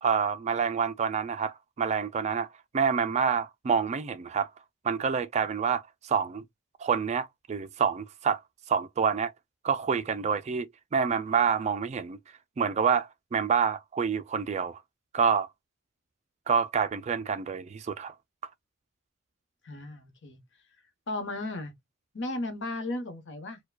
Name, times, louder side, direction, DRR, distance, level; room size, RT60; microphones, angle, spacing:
voice 1, 0.0-2.5 2.7-4.5 4.8-6.4 6.8-8.4 8.7-9.3 9.6-12.2 12.6-14.8 15.1-15.5 16.5-18.1, right 6 dB, 35° right, 0.3 m, -27 dB
voice 2, 19.6-20.4 21.1-21.7 22.1-23.6, left 2 dB, 60° left, 1.0 m, -35 dB
4.5 x 2.2 x 2.2 m
head